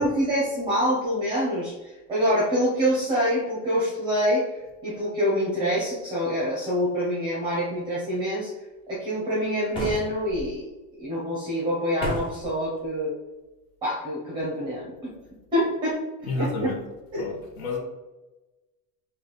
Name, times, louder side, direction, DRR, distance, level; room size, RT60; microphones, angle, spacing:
voice 1, 0.0-8.5 8.9-10.6 11.0-13.1 13.8-15.1 15.5-15.9 16.2-16.7 17.1-17.3, equal, 10° right, -6 dB, 0.8 m, -26 dB
sound 1, 9.7-10.5 12.0-12.5, equal, 15° left, 0.5 m, -32 dB
voice 2, 16.3-16.8 17.2-17.8, left 3 dB, 65° left, 0 dB, 1.1 m, -30 dB
3.4 x 2.7 x 4.0 m, 1.1 s
cardioid pair, 175°, 42 cm